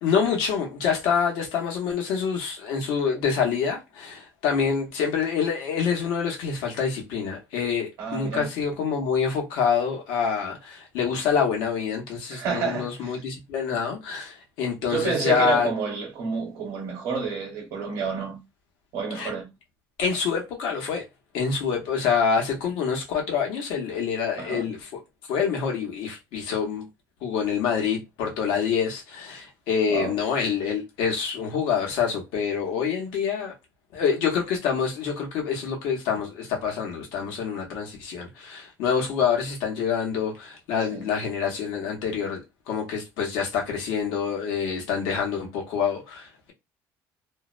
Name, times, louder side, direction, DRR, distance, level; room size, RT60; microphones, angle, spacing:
voice 1, 0.0-15.7 19.1-19.3 20.0-21.0 21.3-25.0 25.3-26.8 27.2-33.5 33.9-42.4 42.7-46.5, left 6 dB, 85° left, 1.0 m, -26 dB
voice 2, 8.0-8.5 12.3-13.2 14.9-18.4 18.9-19.5 24.4-24.7 29.9-30.2 40.9-41.1, right 5 dB, 60° right, 0.8 m, -29 dB
2.5 x 2.1 x 2.4 m
cardioid pair, 175°, 7 cm